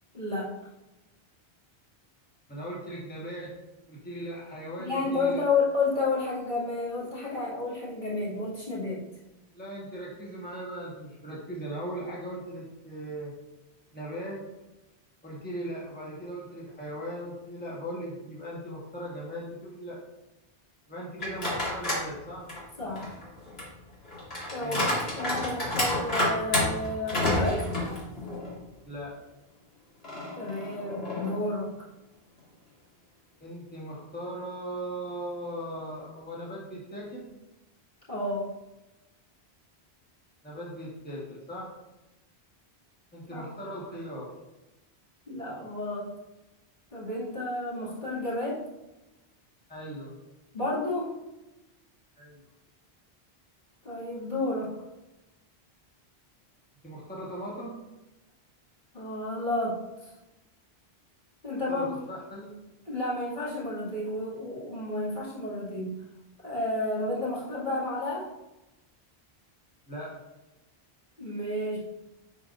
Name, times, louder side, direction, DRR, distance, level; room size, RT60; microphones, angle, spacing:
voice 1, 0.1-0.5 4.8-9.0 22.8-23.2 24.5-24.9 25.2-27.7 30.3-31.7 38.1-38.5 43.3-43.4 45.3-46.1 46.9-48.6 50.5-51.2 53.8-54.8 58.9-60.1 61.4-62.0 62.9-66.0 66.4-68.3 71.2-71.8, left 2 dB, 50° left, -9 dB, 2.6 m, -31 dB
voice 2, 2.5-3.6 3.9-5.4 9.5-13.3 13.9-14.4 15.2-20.0 20.9-22.4 24.6-24.9 28.9-29.1 33.4-37.3 40.4-41.7 43.1-44.3 49.7-50.1 52.2-52.4 56.8-57.7 61.7-62.5 69.9-70.2, right 1 dB, 10° left, -6 dB, 1.5 m, -38 dB
sound 1, 21.2-22.1 22.5-28.6 29.0-29.1 30.0-31.5, left 1 dB, 70° left, 2.4 m, -30 dB
10.5 x 4.8 x 2.6 m, 1.0 s
omnidirectional pair, 1.1 m